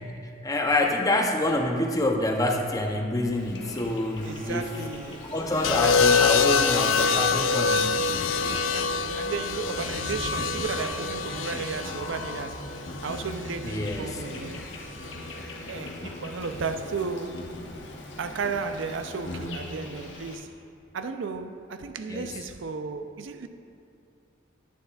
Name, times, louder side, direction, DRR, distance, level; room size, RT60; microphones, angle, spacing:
voice 1, 0.4-4.7 5.3-7.9 13.6-14.2 22.1-22.4, left 1 dB, 20° left, 0.5 m, -26 dB
Insect, 3.3-20.3, left 1 dB, 60° left, 1.0 m, -40 dB
sound 1, 4.2-12.5, left 2 dB, 40° left, 1.2 m, -42 dB
voice 2, 4.2-5.2 5.8-6.0 6.3-6.5 8.6-14.6 15.7-17.5 18.2-20.5 20.9-23.5, right 5 dB, 70° right, 0.4 m, -34 dB
sound 2, 5.6-13.8 15.0-15.4, left 5 dB, 80° left, 0.4 m, -25 dB
9.9 x 9.5 x 2.3 m
head